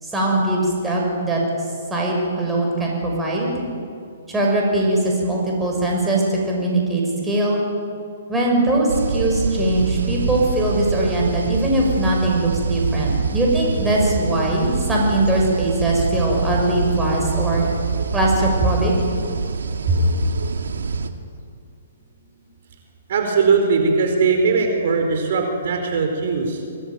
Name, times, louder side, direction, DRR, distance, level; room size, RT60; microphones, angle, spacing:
voice 1, 0.0-1.4 1.9-3.6 4.3-7.6 8.3-17.6 18.1-18.9 19.9-20.0, right 1 dB, 10° right, -2 dB, 6.3 m, -21 dB
sound 1, 8.9-21.1, right 5 dB, 90° right, 2.1 m, -25 dB
voice 2, 23.1-26.6, right 4 dB, 60° right, 4 dB, 4.5 m, -19 dB
25.5 x 19.0 x 9.3 m, 2.4 s
hypercardioid pair, 155°, 0 cm